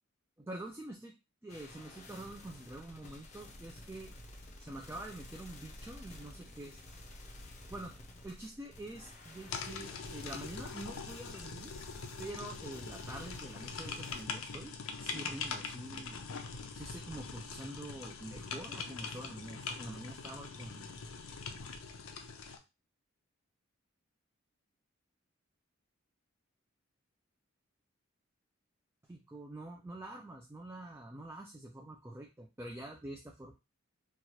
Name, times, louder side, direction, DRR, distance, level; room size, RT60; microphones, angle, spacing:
voice 1, 0.4-1.1 1.4-4.1 4.6-6.8 7.7-7.9 8.2-11.7 12.2-14.7 15.0-16.2 16.7-20.9 29.1-33.5, right 1 dB, 10° right, 0 dB, 0.3 m, -46 dB
sound 1, 1.5-14.2, left 1 dB, 35° left, 0.6 m, -52 dB
sound 2, 9.5-22.6, left 5 dB, 85° left, 0.5 m, -43 dB
2.9 x 2.3 x 2.9 m, 0.26 s
head